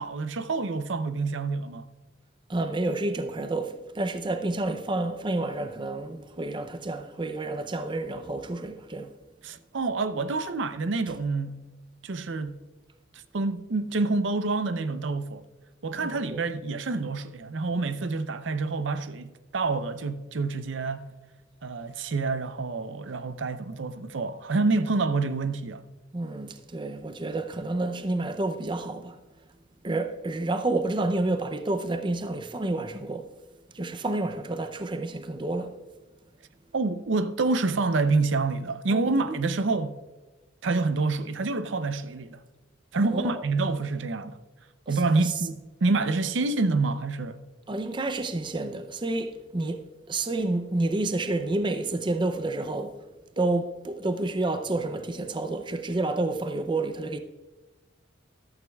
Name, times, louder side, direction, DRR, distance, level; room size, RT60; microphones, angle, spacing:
voice 1, 0.0-1.9 9.4-11.6 12.0-12.6 13.1-15.4 15.8-21.1 21.6-25.8 36.7-40.0 40.6-42.4 42.9-44.4 44.9-47.4, right 3 dB, 70° right, 0.6 m, -27 dB
voice 2, 2.5-9.1 16.0-16.4 26.1-29.2 29.8-33.3 33.7-35.7 38.9-39.4 43.0-43.3 44.9-45.3 47.7-53.0 53.4-57.2, right 2 dB, 25° right, 0.5 m, -29 dB
14.0 x 12.5 x 2.3 m
head